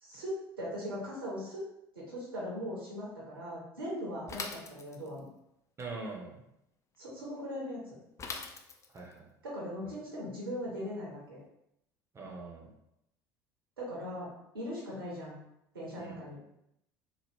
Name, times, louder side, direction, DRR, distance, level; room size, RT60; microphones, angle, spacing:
voice 1, 0.0-1.6 1.9-5.3 7.0-8.0 9.4-11.4 13.8-14.3 14.5-15.4 15.7-16.4, equal, 80° right, -5 dB, 0.9 m, -39 dB
Bicycle / Mechanisms, 4.3-5.3 8.2-9.1, left 4 dB, 25° left, 0.4 m, -41 dB
voice 2, 5.8-6.4 8.9-9.3 9.8-9.9 12.1-12.7 16.0-16.2, right 3 dB, 25° right, 0 dB, 0.6 m, -43 dB
2.8 x 2.0 x 3.5 m, 0.79 s
figure-of-eight pair, 65°, 12 cm